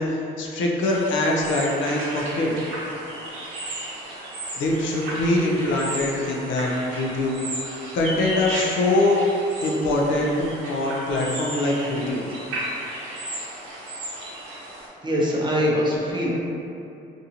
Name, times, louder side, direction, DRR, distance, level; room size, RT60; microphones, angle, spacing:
voice 1, 0.0-2.5 4.6-7.4 7.9-9.2 9.6-12.2, left 2 dB, 75° left, -2 dB, 0.5 m, -23 dB
sound 1, 0.8-14.9, right 1 dB, 85° right, 0.7 m, -34 dB
voice 2, 15.0-16.3, equal, 25° right, -5 dB, 0.6 m, -23 dB
2.6 x 2.4 x 2.8 m, 2.7 s
cardioid pair, 90°, 20 cm